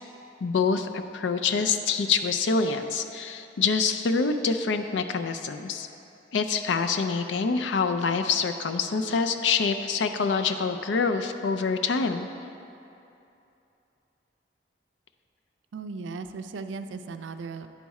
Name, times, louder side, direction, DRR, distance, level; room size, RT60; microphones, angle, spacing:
voice 1, 0.4-5.9 6.3-12.3, left 5 dB, 85° left, 8 dB, 0.4 m, -26 dB
voice 2, 15.7-17.7, right 4 dB, 90° right, 9 dB, 0.4 m, -37 dB
10.0 x 4.1 x 4.7 m, 2.8 s
head